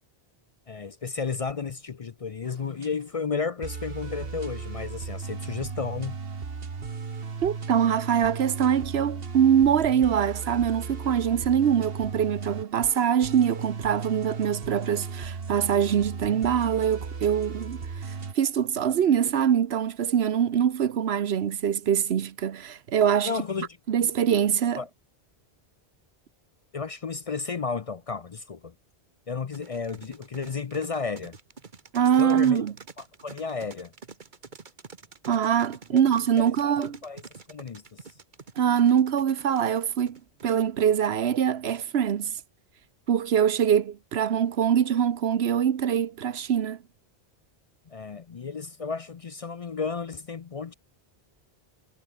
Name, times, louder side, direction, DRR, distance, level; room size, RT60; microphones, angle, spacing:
voice 1, 0.7-6.2 23.2-23.7 24.8-24.9 26.7-28.7 29.3-31.4 32.2-32.7 33.0-33.9 35.9-36.0 36.4-37.2 37.5-38.1 47.9-50.7, left 5 dB, 40° left, 0.6 m, -33 dB
sound 1, 2.5-2.9 3.6-18.3, right 5 dB, 65° right, 1.7 m, -36 dB
voice 2, 7.4-17.8 18.3-23.3 23.9-24.8 31.9-32.7 35.3-37.0 38.6-42.4 43.1-46.8, right 8 dB, 85° right, 1.1 m, -23 dB
sound 2, 29.5-41.0, right 4 dB, 50° right, 1.5 m, -46 dB
omnidirectional pair, 1.0 m